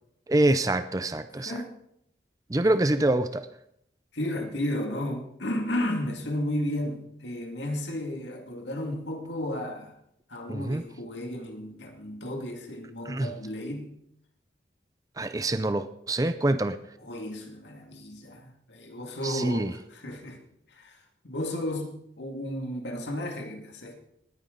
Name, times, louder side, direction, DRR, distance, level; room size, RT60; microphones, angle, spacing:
voice 1, 0.3-1.5 2.5-3.5 10.5-10.8 13.1-13.3 15.2-16.8 19.2-19.7, right 1 dB, 20° right, 11 dB, 0.5 m, -25 dB
voice 2, 1.4-1.7 4.1-9.9 10.3-14.0 17.0-20.4 20.7-24.0, left 1 dB, 85° left, 3 dB, 2.3 m, -33 dB
19.5 x 9.4 x 3.9 m, 0.75 s
head